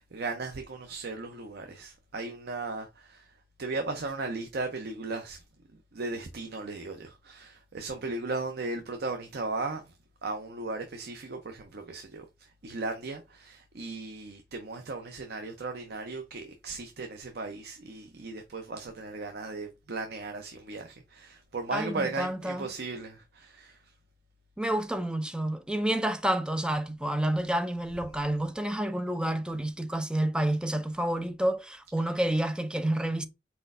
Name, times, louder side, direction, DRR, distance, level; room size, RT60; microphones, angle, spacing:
voice 1, 0.0-3.3 3.6-5.4 5.9-10.0 10.2-23.8, right 3 dB, 60° right, 0.7 m, -36 dB
voice 2, 21.7-22.7 24.6-33.3, right 1 dB, 5° right, 0.4 m, -29 dB
4.4 x 4.2 x 2.5 m
head